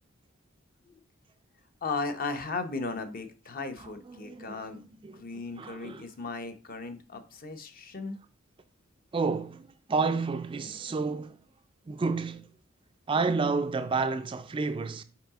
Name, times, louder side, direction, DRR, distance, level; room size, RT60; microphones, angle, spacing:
voice 1, 1.8-4.8 5.1-8.2, left 3 dB, 45° left, 0.8 m, -36 dB
voice 2, 3.8-5.3 5.5-6.1 9.1-11.4 11.9-12.5 13.1-15.0, right 4 dB, 25° right, 0.3 m, -30 dB
5.8 x 4.8 x 3.6 m
head